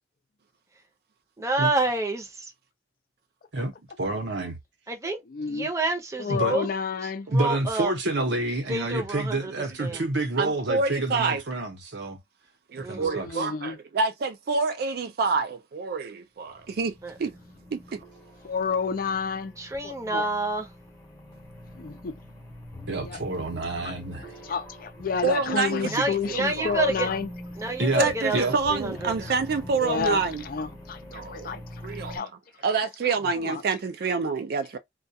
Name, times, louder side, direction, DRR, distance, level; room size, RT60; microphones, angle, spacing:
voice 1, 1.4-2.5 4.9-5.2 5.5-6.7 7.3-7.9 8.7-9.5 9.8-10.0 12.8-13.2 17.0-17.1 19.6-20.7 25.9-27.1 27.6-29.3, right 2 dB, 20° right, 0.7 m, -28 dB
voice 2, 4.0-4.6 6.3-6.6 7.3-12.2 12.8-13.4 22.9-24.3 25.8-26.1 27.8-28.6, right 2 dB, 80° right, 0.8 m, -28 dB
voice 3, 5.3-5.7 6.2-7.3 13.2-13.7 18.4-19.5 19.8-20.3 21.8-22.2 23.0-23.2 23.8-23.9 24.5-27.3 29.8-32.3 33.4-33.6, left 5 dB, 55° left, 0.4 m, -30 dB
voice 4, 10.4-11.4 12.7-16.9 17.2-17.3 17.7-18.0 25.2-26.7 27.9-30.4 31.1-32.3 32.6-34.8, right 4 dB, 60° right, 0.4 m, -27 dB
sound 1, 16.5-32.2, left 1 dB, 15° left, 0.8 m, -44 dB
2.3 x 2.2 x 2.6 m
head